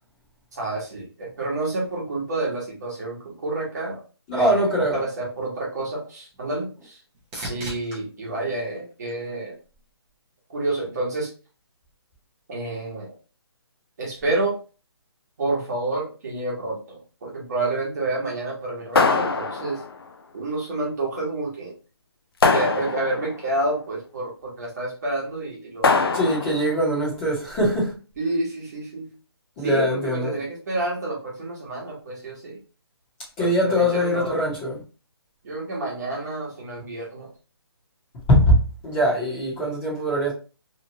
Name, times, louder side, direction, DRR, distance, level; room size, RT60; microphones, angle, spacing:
voice 1, 0.5-4.0 4.3-4.6 4.9-7.0 7.5-9.5 10.5-11.3 12.5-13.1 14.0-14.6 15.4-19.8 20.3-21.7 22.5-25.9 28.2-29.1 29.6-32.6 33.4-34.5 35.4-37.3, right 2 dB, 40° right, 1.2 m, -29 dB
voice 2, 4.3-5.0 26.1-28.0 29.6-30.3 33.4-34.8 38.3-40.3, equal, 15° left, 1.0 m, -22 dB
sound 1, 6.2-9.8 10.3-10.9 18.7-18.8, right 1 dB, 10° right, 0.6 m, -41 dB
sound 2, 19.0-20.0 22.4-23.4 25.8-26.7, left 4 dB, 60° left, 0.5 m, -22 dB
3.0 x 2.4 x 2.8 m
hypercardioid pair, 165°, 14 cm